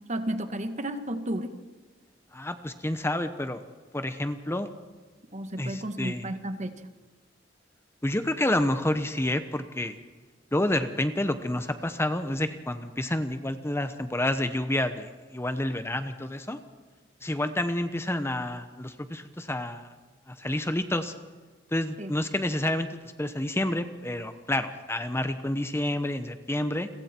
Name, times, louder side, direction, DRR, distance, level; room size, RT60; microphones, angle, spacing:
voice 1, 0.1-1.5 5.3-6.8 22.0-22.1, right 1 dB, 40° right, 8 dB, 1.7 m, -32 dB
voice 2, 2.3-3.6 3.9-4.7 5.6-6.3 8.0-10.0 10.5-16.6 17.2-19.9 20.3-21.1 21.7-26.9, left 1 dB, 15° left, 9 dB, 1.0 m, -29 dB
30.0 x 23.0 x 4.5 m, 1.4 s
head